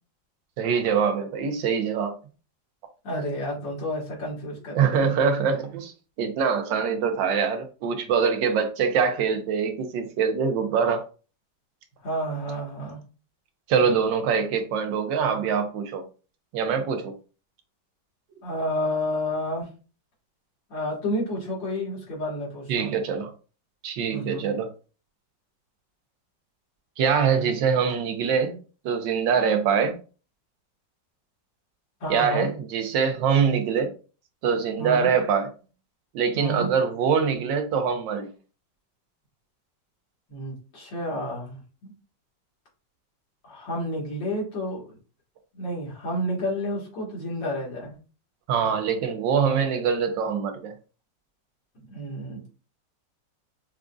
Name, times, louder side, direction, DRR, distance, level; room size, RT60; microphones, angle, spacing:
voice 1, 0.6-2.2 4.7-5.9 6.2-11.0 13.7-16.0 16.5-17.1 22.7-23.3 23.8-24.7 27.0-28.6 28.8-30.0 32.1-33.9 34.4-35.5 36.1-38.3 48.5-50.7, right 6 dB, 80° right, 1.4 m, -24 dB
voice 2, 3.0-5.1 12.0-13.0 18.4-19.7 20.7-23.0 24.1-24.5 32.0-32.5 34.8-35.1 36.3-36.7 40.3-41.9 43.4-44.9 45.5-48.0 51.8-52.6, equal, 80° left, 2.4 m, -30 dB
6.0 x 2.5 x 2.3 m
omnidirectional pair, 2.0 m